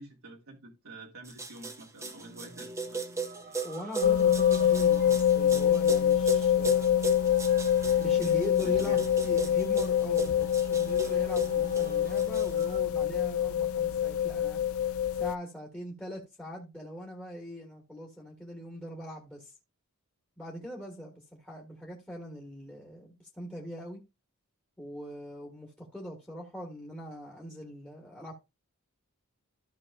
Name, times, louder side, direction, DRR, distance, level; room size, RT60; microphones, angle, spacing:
voice 1, 0.0-3.0 8.6-9.0, right 2 dB, 70° right, 1.7 m, -48 dB
sound 1, 1.3-12.6, right 4 dB, 15° right, 1.1 m, -38 dB
sound 2, 2.2-12.8, right 4 dB, 40° right, 0.9 m, -49 dB
voice 2, 3.6-7.2 8.0-14.6 15.2-19.5 20.4-24.0 24.8-28.3, equal, 5° left, 1.7 m, -41 dB
sound 3, 4.0-15.3, left 9 dB, 65° left, 0.3 m, -25 dB
14.0 x 5.9 x 2.5 m
head